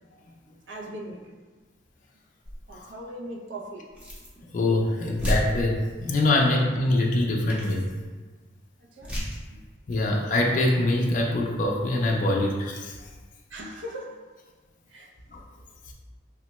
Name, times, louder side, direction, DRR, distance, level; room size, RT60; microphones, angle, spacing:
voice 1, 0.7-1.3 2.7-3.9 6.3-6.5 9.0-9.1 9.5-9.6 9.9-10.1 13.5-14.2 14.9-15.1, right 1 dB, 75° right, 0 dB, 0.5 m, -39 dB
sound 1, 2.4-2.8 3.9-4.4 4.8-4.9 5.1-6.1 7.0-7.1 7.5-8.0 9.0-9.5 9.9-10.0, equal, 5° right, 0.6 m, -32 dB
voice 2, 4.5-7.8 9.9-12.9 15.3-15.4, left 2 dB, 45° left, -1 dB, 0.4 m, -24 dB
3.6 x 2.1 x 2.9 m, 1.4 s
head